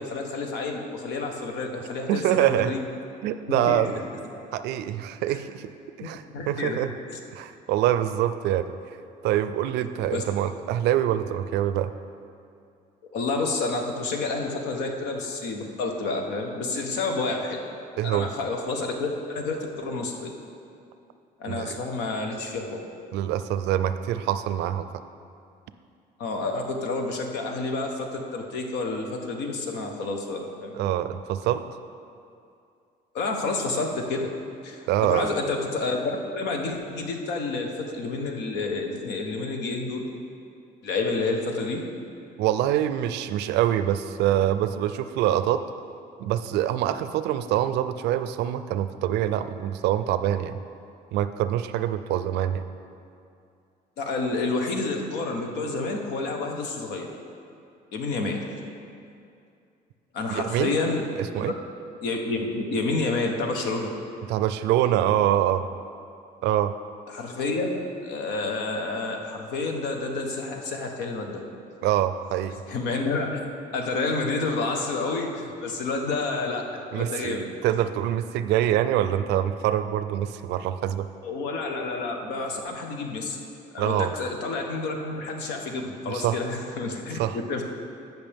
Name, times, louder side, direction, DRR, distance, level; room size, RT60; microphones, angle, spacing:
voice 1, 0.0-2.8 3.5-3.9 5.3-5.4 6.0-6.8 7.1-7.2 10.1-10.2 13.1-17.6 18.0-20.3 21.4-22.8 26.2-30.7 33.1-34.3 34.6-36.0 36.3-40.0 40.8-41.8 54.0-57.1 57.9-58.4 60.1-61.0 61.3-61.4 62.0-63.9 67.1-67.7 68.0-71.4 72.7-73.4 73.7-76.6 76.9-77.5 81.2-83.4 83.7-87.6, left 3 dB, 90° left, 2 dB, 1.1 m, -29 dB
voice 2, 2.1-2.7 3.2-4.0 4.5-5.7 6.0-6.9 7.3-8.7 9.2-11.9 18.0-18.3 21.5-21.8 23.1-24.9 30.7-31.6 34.9-35.3 42.4-45.6 46.2-50.6 51.1-52.6 60.3-60.7 61.2-61.5 64.3-65.7 66.4-66.7 71.8-72.6 76.9-81.1 83.8-84.1 86.1-86.4 87.2-87.4, right 12 dB, 85° right, 11 dB, 0.4 m, -25 dB
14.0 x 6.0 x 3.5 m, 2.5 s
cardioid pair, 110°, 17 cm